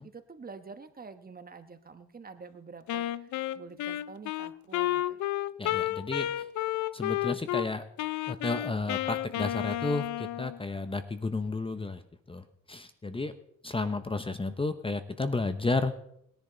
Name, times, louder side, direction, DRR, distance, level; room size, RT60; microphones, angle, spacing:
voice 1, 0.0-5.2, right 4 dB, 30° right, 9 dB, 1.3 m, -47 dB
Wind instrument woodwind instrument, 2.9-7.7 8.0-10.6, left 14 dB, 70° left, 0.6 m, -32 dB
voice 2, 5.6-6.4 6.9-7.8 8.3-12.0 12.3-13.3 13.6-15.9, left 3 dB, 20° left, 10 dB, 1.0 m, -32 dB
20.5 x 10.5 x 4.0 m, 0.74 s
cardioid pair, 90°, 30 cm